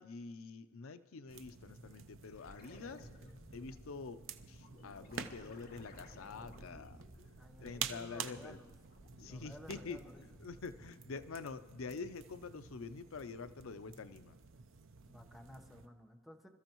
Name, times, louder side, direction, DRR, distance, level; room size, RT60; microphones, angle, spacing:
voice 1, 0.0-3.1 3.5-4.2 4.5-7.0 7.6-8.6 9.2-10.0 10.4-14.4, left 4 dB, 90° left, 12 dB, 0.6 m, -46 dB
sound 1, 1.3-15.9, right 7 dB, 65° right, 0.6 m, -50 dB
sound 2, 2.3-8.1 8.5-11.0 13.5-13.6, equal, 50° left, 2.2 m, -57 dB
voice 2, 7.4-8.7 9.2-10.2 15.1-16.5, equal, ahead, 3 dB, 1.0 m, -55 dB
26.0 x 13.5 x 3.0 m, 1.2 s
head